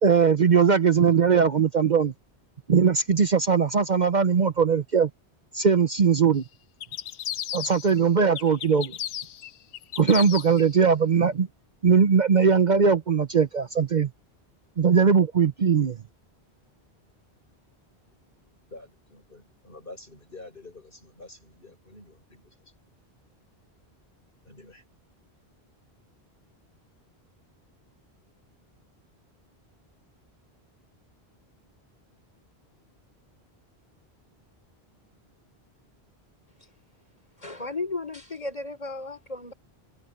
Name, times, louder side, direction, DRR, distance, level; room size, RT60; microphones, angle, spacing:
voice 1, 0.0-2.1 2.7-5.1 5.5-6.4 7.5-8.9 10.0-11.5 11.8-14.1 14.8-16.0, right 6 dB, 45° right, 0.9 m, -20 dB
sound 1, 6.8-8.0 8.4-10.7, left 10 dB, 90° left, 1.0 m, -34 dB
voice 2, 18.7-22.5 24.4-24.8, left 2 dB, 55° left, 5.7 m, -47 dB
voice 3, 37.4-39.5, left 3 dB, 35° left, 4.8 m, -34 dB
omnidirectional pair, 1.1 m